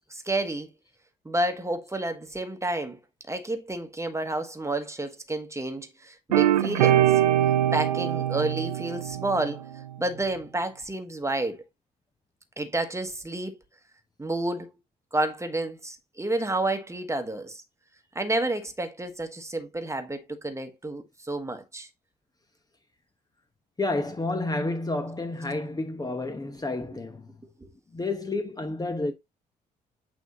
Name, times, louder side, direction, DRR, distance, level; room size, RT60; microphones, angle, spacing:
voice 1, 0.1-0.7 1.2-3.0 3.3-7.1 7.7-9.6 10.0-11.6 12.6-13.5 14.2-14.7 15.1-17.6 18.1-21.9 27.6-27.7, right 2 dB, 15° right, 1.3 m, -30 dB
sound 1, 6.3-9.8, right 12 dB, 80° right, 0.4 m, -23 dB
voice 2, 23.8-27.3 27.9-29.1, left 2 dB, 20° left, 1.0 m, -30 dB
9.2 x 3.5 x 2.9 m
figure-of-eight pair, 45°, 21 cm